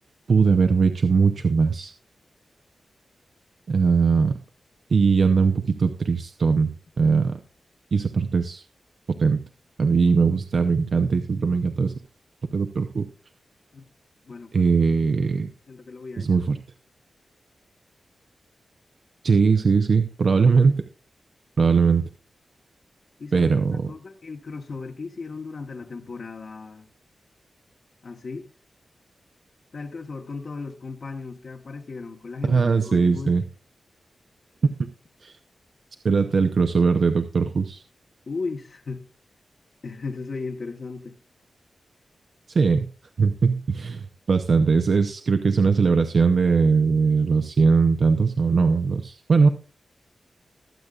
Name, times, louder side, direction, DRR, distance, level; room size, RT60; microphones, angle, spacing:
voice 1, 0.3-1.9 3.7-4.3 4.9-6.7 7.0-7.4 7.9-8.6 9.2-9.4 9.8-11.9 12.5-13.1 14.5-15.5 16.2-16.6 19.2-20.8 21.6-22.0 23.3-23.9 32.5-33.4 35.2-35.3 36.0-37.8 42.5-42.8 43.2-49.5, right 5 dB, 55° right, 6 dB, 0.7 m, -20 dB
voice 2, 14.3-14.7 15.7-16.4 23.2-26.9 28.0-28.5 29.7-33.4 38.3-39.1 39.8-41.2, left 4 dB, 50° left, 2 dB, 1.1 m, -36 dB
21.0 x 8.1 x 2.4 m, 0.34 s
wide cardioid pair, 155°, 0 cm